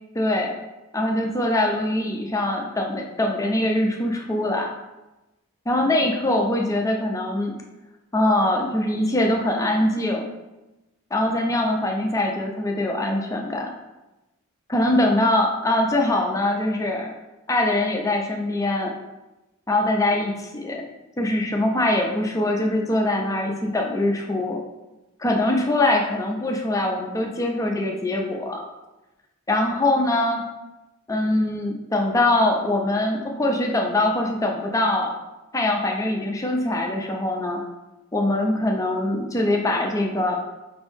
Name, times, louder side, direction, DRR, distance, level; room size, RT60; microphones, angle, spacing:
voice 1, 0.1-0.5 0.9-4.7 5.7-7.6 8.1-10.3 11.1-13.7 14.7-17.1 17.5-18.9 19.7-20.8 21.2-24.6 25.2-28.6 29.5-30.4 31.1-35.1 35.5-37.6 38.1-40.4, left 1 dB, 15° left, 1 dB, 0.4 m, -23 dB
5.1 x 2.6 x 3.5 m, 1.0 s
head